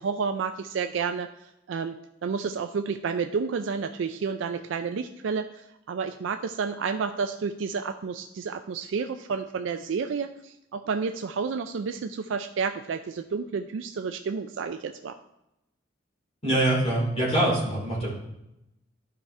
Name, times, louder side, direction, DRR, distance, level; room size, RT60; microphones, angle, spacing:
voice 1, 0.0-2.0 2.2-15.1, right 5 dB, 75° right, 7 dB, 0.4 m, -30 dB
voice 2, 16.4-18.1, right 1 dB, 35° left, -4 dB, 2.7 m, -24 dB
11.5 x 4.9 x 3.2 m, 0.87 s
head